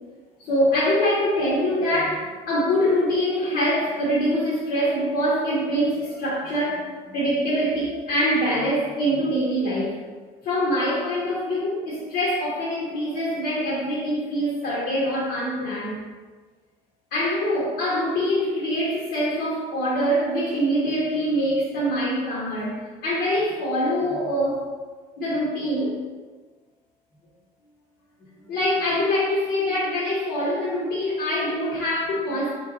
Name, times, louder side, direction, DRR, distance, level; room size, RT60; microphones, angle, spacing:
voice 1, 0.4-10.0 10.4-16.0 17.1-24.7 25.2-26.0 28.4-32.6, equal, 70° left, -6 dB, 1.1 m, -24 dB
3.5 x 3.2 x 3.9 m, 1.4 s
supercardioid pair, 80°, 17 cm